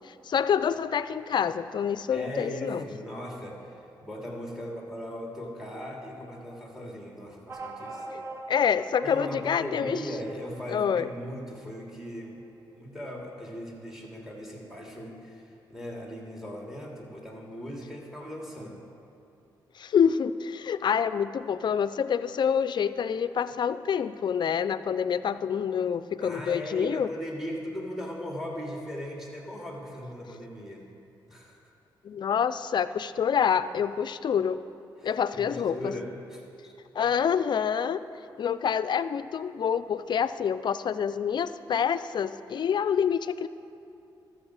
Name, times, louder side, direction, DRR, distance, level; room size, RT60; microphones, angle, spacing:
voice 1, 0.0-2.9 8.1-8.2 8.5-10.0 10.7-11.1 19.8-27.1 32.0-34.6 35.0-35.9 36.9-38.0 38.4-43.5, left 7 dB, 55° left, 13 dB, 0.4 m, -27 dB
voice 2, 2.1-8.1 9.0-12.4 12.7-18.8 26.2-30.8 31.3-31.7 35.0-36.7 37.0-37.1, equal, 5° right, -2 dB, 2.7 m, -38 dB
sound 1, 7.5-12.4, right 1 dB, 30° right, 1.2 m, -43 dB
13.0 x 7.0 x 4.9 m, 2.7 s
supercardioid pair, 60°, 9 cm